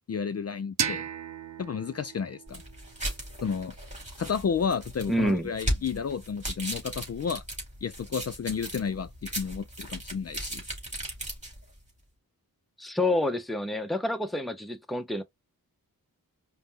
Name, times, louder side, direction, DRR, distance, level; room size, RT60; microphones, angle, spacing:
voice 1, 0.1-1.0 1.6-2.6 3.4-3.7 4.2-7.4 7.8-10.6, left 6 dB, 45° left, 0.4 m, -31 dB
sound 1, 0.8-3.6, right 7 dB, 50° right, 0.6 m, -35 dB
sound 2, 2.5-11.8, right 1 dB, 20° right, 2.7 m, -37 dB
voice 2, 5.1-5.5 12.8-15.2, left 1 dB, ahead, 0.6 m, -28 dB
5.2 x 2.1 x 2.8 m
wide cardioid pair, 115°, 36 cm